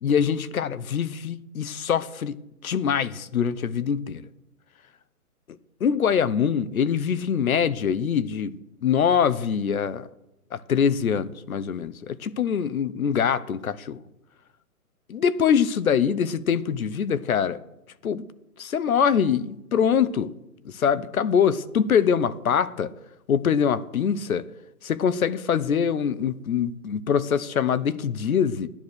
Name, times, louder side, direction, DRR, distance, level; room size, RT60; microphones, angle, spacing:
voice 1, 0.0-4.3 5.8-8.6 8.8-10.1 10.5-14.0 15.1-17.6 18.0-18.2 18.6-20.3 20.6-22.9 23.3-24.5 24.8-28.7, left 7 dB, 65° left, 1.1 m, -24 dB
15.5 x 10.5 x 6.5 m
hypercardioid pair, 170°, 45 cm